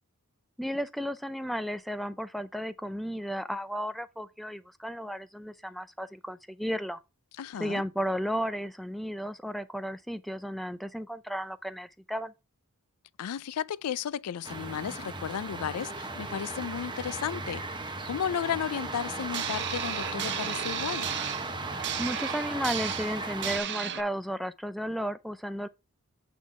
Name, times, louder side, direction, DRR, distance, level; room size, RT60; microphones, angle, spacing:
voice 1, 0.6-7.0 7.6-12.3 22.0-25.7, equal, ahead, 0.4 m, -34 dB
voice 2, 7.4-7.8 13.2-21.1, left 8 dB, 80° left, 0.4 m, -34 dB
sound 1, 14.4-23.6, right 3 dB, 20° right, 1.0 m, -36 dB
sound 2, 19.3-24.0, right 10 dB, 50° right, 0.7 m, -34 dB
8.4 x 3.9 x 4.6 m
head